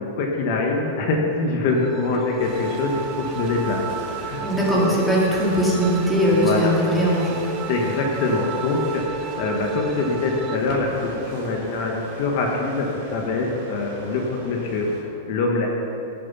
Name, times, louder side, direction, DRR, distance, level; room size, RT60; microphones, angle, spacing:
voice 1, 0.0-4.5 4.7-4.9 6.4-6.7 7.7-15.7, left 3 dB, 40° left, 0 dB, 1.3 m, -24 dB
sound 1, 1.7-10.6, right 7 dB, 20° right, 0.4 m, -33 dB
sound 2, 2.4-15.0, right 2 dB, 35° right, 3.3 m, -39 dB
voice 2, 4.4-7.4, equal, 5° left, -6 dB, 2.1 m, -20 dB
16.5 x 7.6 x 5.5 m, 3.0 s
supercardioid pair, 170°, 0 cm